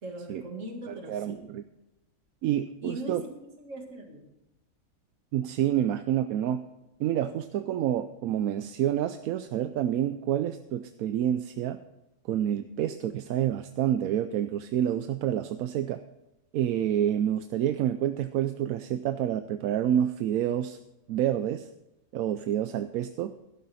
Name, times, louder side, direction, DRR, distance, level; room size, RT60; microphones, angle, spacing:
voice 1, 0.0-1.4 2.8-3.2 3.6-4.3, right 1 dB, 60° right, 2 dB, 2.4 m, -40 dB
voice 2, 0.9-1.6 2.4-3.2 5.3-6.6 7.0-11.8 12.3-16.0 16.5-20.8 21.1-21.7 22.1-23.3, right 10 dB, 85° right, 10 dB, 1.0 m, -28 dB
12.5 x 11.5 x 4.2 m, 0.93 s
omnidirectional pair, 1.5 m